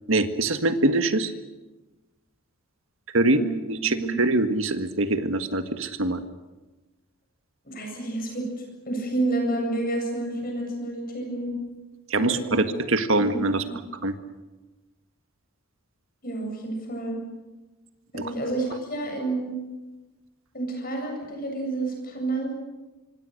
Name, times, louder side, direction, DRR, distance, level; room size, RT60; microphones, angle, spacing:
voice 1, 0.1-1.3 3.1-3.4 3.7-6.2 12.1-13.6 14.0-14.1 18.1-18.3, right 2 dB, 65° right, 8 dB, 1.7 m, -23 dB
voice 2, 3.2-4.2 7.6-8.5 8.9-11.6 12.2-12.7 13.2-13.8 16.2-17.2 18.1-19.5 20.5-22.6, right 2 dB, 40° left, 2 dB, 8.0 m, -30 dB
26.0 x 25.0 x 6.6 m, 1.1 s
head